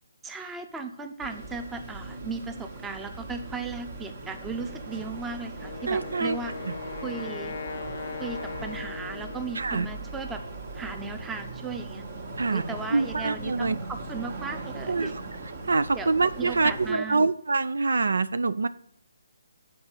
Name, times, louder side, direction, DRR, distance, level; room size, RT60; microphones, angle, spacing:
voice 1, 0.2-6.5 7.0-7.6 8.2-10.4 10.7-12.0 12.5-15.1 15.9-16.1 16.4-17.2, right 4 dB, 10° right, 7 dB, 0.8 m, -36 dB
sound 1, 1.2-16.9, right 2 dB, 50° right, 1.6 m, -39 dB
Wind instrument woodwind instrument, 5.6-9.8, left 6 dB, 50° left, 0.5 m, -39 dB
voice 2, 5.9-6.4 9.5-9.9 12.4-12.6 12.9-13.8 14.9-15.1 15.7-18.7, right 3 dB, 75° right, 15 dB, 0.4 m, -25 dB
7.8 x 5.1 x 7.2 m, 0.66 s
figure-of-eight pair, 150°, 0 cm